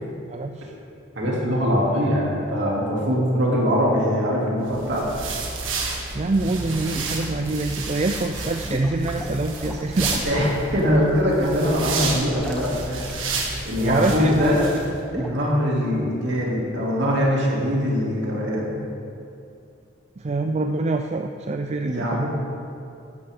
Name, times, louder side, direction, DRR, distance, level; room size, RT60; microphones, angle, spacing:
voice 1, 0.3-0.7 6.1-10.2 13.8-14.6 20.2-22.3, right 2 dB, 35° right, 5 dB, 0.4 m, -25 dB
voice 2, 1.1-5.1 10.2-13.2 13.6-14.7 15.1-18.8 21.8-22.3, equal, 60° right, -4 dB, 3.0 m, -22 dB
sound 1, 4.7-14.9, right 3 dB, 80° right, 1.8 m, -31 dB
sound 2, 6.5-7.9 8.3-15.3, equal, 5° left, 0.9 m, -35 dB
15.5 x 12.5 x 3.8 m, 2.6 s
head